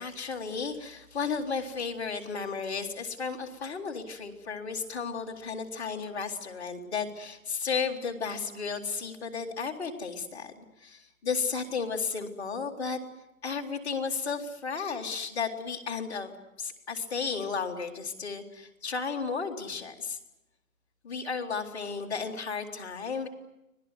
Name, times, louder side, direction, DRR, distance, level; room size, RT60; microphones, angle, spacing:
voice 1, 0.0-10.5 10.8-13.0 13.4-16.3 16.6-20.2 21.0-23.3, left 5 dB, 5° left, -6 dB, 1.4 m, -33 dB
25.5 x 18.0 x 9.5 m, 0.91 s
hypercardioid pair, 175°, 43 cm